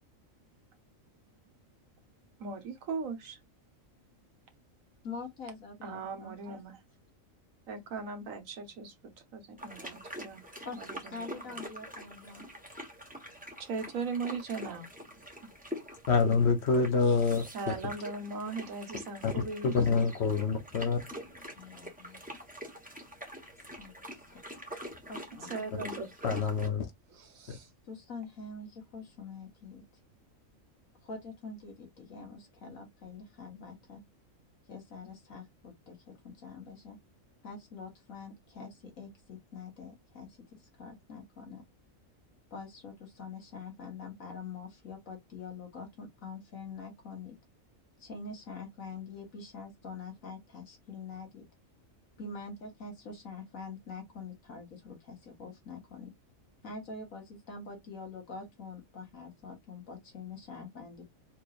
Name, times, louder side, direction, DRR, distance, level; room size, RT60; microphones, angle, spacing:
voice 1, 2.4-3.4 5.8-6.8 7.7-8.9 9.3-10.4 10.7-11.6 13.6-14.9 17.5-19.7 25.5-26.4 27.1-27.7, right 4 dB, 80° right, 1.4 m, -39 dB
voice 2, 5.0-6.6 10.6-12.5 21.6-22.2 23.8-23.9 24.3-24.4 25.1-26.1 27.9-29.8 31.0-34.0 34.7-37.0 37.4-41.6 42.5-47.4 48.0-51.5 52.2-56.1 56.6-61.1, left 4 dB, 80° left, 2.0 m, -45 dB
sound 1, 9.6-26.7, equal, 5° right, 1.1 m, -45 dB
voice 3, 16.1-17.7 19.2-19.3 19.6-21.0 26.2-26.9 27.5-27.6, left 5 dB, 55° left, 1.1 m, -26 dB
4.4 x 3.1 x 2.5 m
omnidirectional pair, 1.4 m